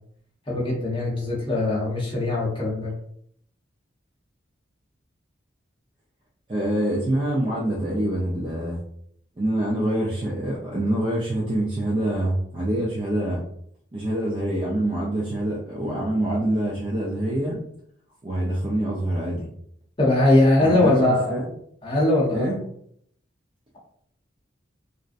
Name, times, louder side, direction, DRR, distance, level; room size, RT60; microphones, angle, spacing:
voice 1, 0.5-2.9 20.0-21.3 21.8-22.5, left 1 dB, 25° left, -5 dB, 0.8 m, -21 dB
voice 2, 6.5-8.8 9.4-13.4 13.9-17.6 18.2-19.5 20.6-21.5 22.3-22.6, right 1 dB, 25° right, -6 dB, 0.4 m, -25 dB
2.5 x 2.0 x 2.4 m, 0.67 s
head